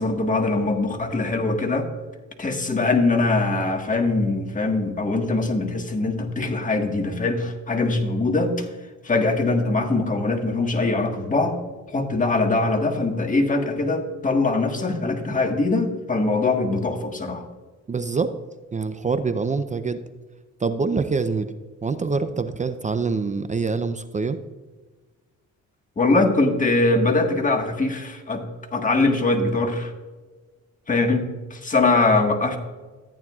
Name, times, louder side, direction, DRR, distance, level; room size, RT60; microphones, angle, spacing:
voice 1, 0.0-1.9 2.4-8.7 9.0-11.5 11.9-17.4 26.0-28.4 28.7-29.9 30.9-32.6, left 3 dB, 25° left, 4 dB, 1.5 m, -22 dB
voice 2, 17.9-18.4 18.7-20.0 20.6-21.5 21.8-24.4, right 4 dB, 25° right, 10 dB, 0.5 m, -25 dB
14.0 x 9.0 x 2.4 m, 1.3 s
cardioid pair, 90°, 30 cm